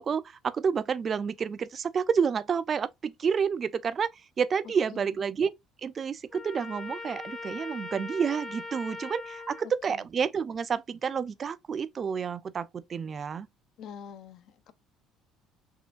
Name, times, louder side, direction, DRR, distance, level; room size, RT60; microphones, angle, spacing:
voice 1, 0.0-4.1 4.4-5.5 5.8-13.5, right 6 dB, 40° right, 0.3 m, -29 dB
Trumpet, 6.3-9.7, left 2 dB, 20° left, 0.7 m, -40 dB
voice 2, 13.8-14.7, left 7 dB, 65° left, 0.5 m, -45 dB
3.6 x 2.4 x 2.4 m
supercardioid pair, 75°, 0 cm